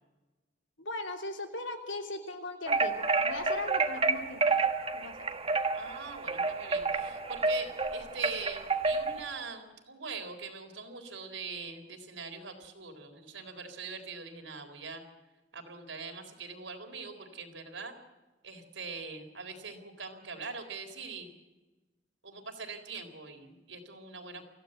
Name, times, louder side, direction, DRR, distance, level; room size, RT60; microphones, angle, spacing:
voice 1, 0.8-4.5 4.9-5.2, left 2 dB, 85° left, 4 dB, 3.0 m, -39 dB
sound 1, 2.7-9.3, right 3 dB, 30° right, 1.6 m, -29 dB
voice 2, 5.7-15.0 15.5-17.9 18.4-21.3 22.2-24.4, right 4 dB, 80° right, 5 dB, 4.1 m, -42 dB
25.0 x 16.0 x 7.9 m, 1.1 s
head